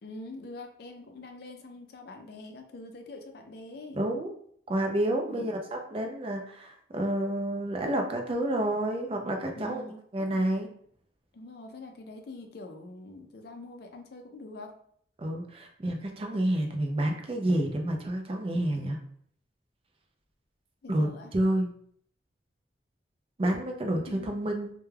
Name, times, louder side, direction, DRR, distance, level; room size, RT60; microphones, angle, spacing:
voice 1, 0.0-4.0 5.3-5.6 9.5-10.4 11.3-14.7 16.3-16.4 20.8-21.3 24.1-24.4, left 2 dB, 55° left, 4 dB, 0.4 m, -44 dB
voice 2, 3.9-4.3 4.7-9.8 10.1-10.7 15.2-19.0 20.9-21.7 23.4-24.7, right 1 dB, 30° right, 3 dB, 0.4 m, -29 dB
2.2 x 2.2 x 3.1 m, 0.63 s
head